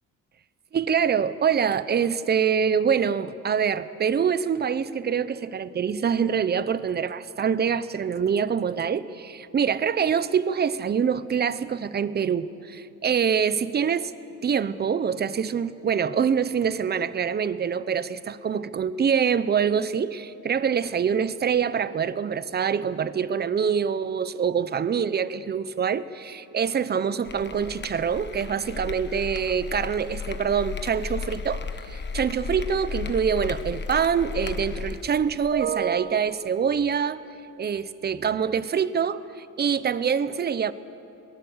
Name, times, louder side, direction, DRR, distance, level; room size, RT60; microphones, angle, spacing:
voice 1, 0.7-14.1 14.4-37.2 37.6-40.7, right 7 dB, 30° right, 16 dB, 0.7 m, -25 dB
sound 1, 27.2-35.1, left 5 dB, 35° left, 1.3 m, -34 dB
23.0 x 18.5 x 8.0 m, 3.0 s
cardioid pair, 125°, 32 cm